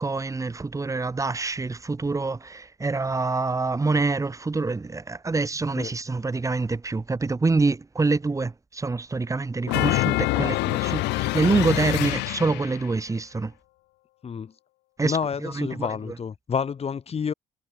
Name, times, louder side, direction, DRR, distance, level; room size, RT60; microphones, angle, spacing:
voice 1, 0.0-13.5 15.0-16.1, right 3 dB, 20° right, 3.2 m, -26 dB
sound 1, 9.7-12.9, left 21 dB, 90° left, 2.7 m, -25 dB
voice 2, 15.0-17.3, left 6 dB, 35° left, 3.2 m, -29 dB
cardioid pair, 110°, 17 cm